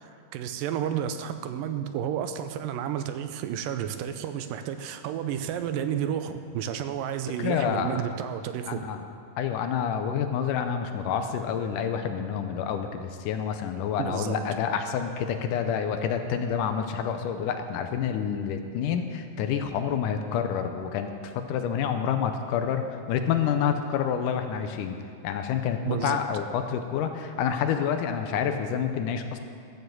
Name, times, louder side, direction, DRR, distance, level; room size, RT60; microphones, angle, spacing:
voice 1, 0.3-8.8 14.0-14.5 25.9-26.2, right 9 dB, 90° right, 9 dB, 2.3 m, -31 dB
voice 2, 7.4-8.0 8.7-9.0 9.4-25.0 25.2-29.4, left 8 dB, 80° left, 7 dB, 2.1 m, -28 dB
13.0 x 7.1 x 7.7 m, 2.4 s
omnidirectional pair, 3.9 m